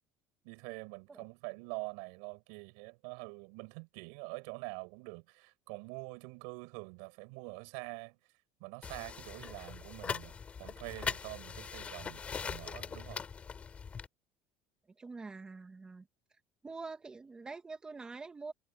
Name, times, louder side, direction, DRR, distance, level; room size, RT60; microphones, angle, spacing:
voice 1, 0.4-8.2 8.6-13.2, right 35 dB, 85° right, 7.4 m, -45 dB
sound 1, 8.8-14.1, left 6 dB, 20° left, 5.0 m, -41 dB
voice 2, 15.0-16.1 16.6-18.5, right 4 dB, 15° right, 2.0 m, -45 dB
cardioid pair, 160°, 6 cm